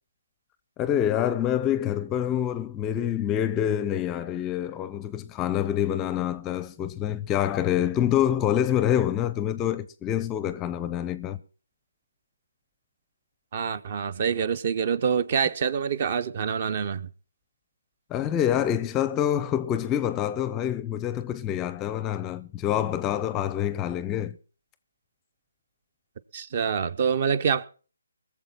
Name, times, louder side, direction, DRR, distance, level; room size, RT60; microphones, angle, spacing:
voice 1, 0.8-11.4 18.1-24.4, left 10 dB, 15° left, 0.6 m, -26 dB
voice 2, 13.5-17.1 26.3-27.6, right 7 dB, 40° right, 0.9 m, -26 dB
21.0 x 7.3 x 5.8 m
figure-of-eight pair, 155°, 0 cm